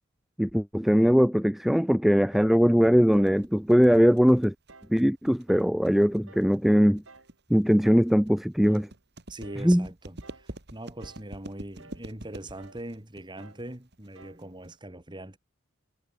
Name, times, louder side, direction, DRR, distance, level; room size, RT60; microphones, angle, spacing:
voice 1, 0.4-4.5 4.9-7.0 7.5-8.9 9.6-9.9, equal, ahead, 0.4 m, -21 dB
sound 1, 2.3-2.6 3.1-3.4 3.9-4.2 4.7-5.0 5.5-5.8 6.3-6.6 7.1-7.4 7.8-8.1 8.6-8.9 9.4-9.7 10.2-10.5 11.0-11.3 11.8-12.1 12.6-12.9 13.4-13.7 14.2-14.5, right 3 dB, 75° right, 4.2 m, -52 dB
sound 2, 2.8-14.8, right 1 dB, 55° right, 2.6 m, -46 dB
voice 2, 9.3-15.4, right 1 dB, 20° right, 2.4 m, -41 dB
head